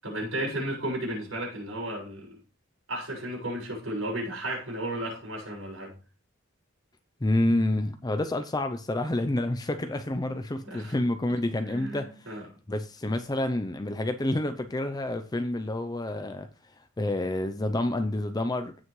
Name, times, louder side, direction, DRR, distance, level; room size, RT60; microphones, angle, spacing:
voice 1, 0.0-2.4 2.9-5.9 10.6-11.0 11.6-12.4, right 1 dB, 70° right, 6.5 m, -34 dB
voice 2, 7.2-12.4 12.7-18.8, left 1 dB, 20° left, 0.5 m, -29 dB
16.5 x 6.3 x 3.2 m
head